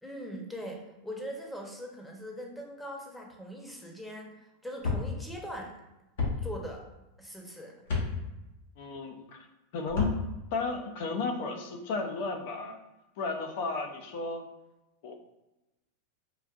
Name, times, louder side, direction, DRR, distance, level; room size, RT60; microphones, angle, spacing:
voice 1, 0.0-4.3 4.6-5.8 6.4-6.8 7.2-7.7, equal, 5° left, 0 dB, 0.8 m, -41 dB
sound 1, 4.8-5.0 6.2-6.3 7.8-8.1 9.8-10.2, left 4 dB, 80° left, 1.3 m, -29 dB
voice 2, 8.8-9.5 9.7-10.1 10.5-12.8 13.2-14.4 15.0-15.1, left 4 dB, 65° left, 4 dB, 0.6 m, -33 dB
4.8 x 2.5 x 2.4 m, 0.99 s
hypercardioid pair, 120°, 0 cm